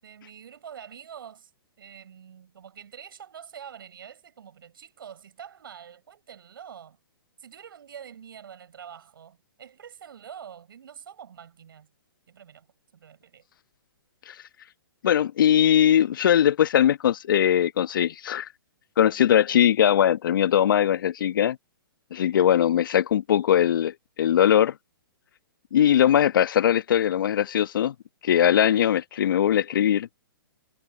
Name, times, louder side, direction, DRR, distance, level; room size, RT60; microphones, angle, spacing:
voice 1, 0.0-1.5 1.8-7.0 7.4-11.9 12.3-12.7 12.9-13.5, right 8 dB, 65° right, 7.1 m, -45 dB
voice 2, 15.0-18.5 19.0-21.6 22.1-24.7 25.7-27.9 28.2-30.1, left 10 dB, 60° left, 1.4 m, -20 dB
hypercardioid pair, 130°, 12 cm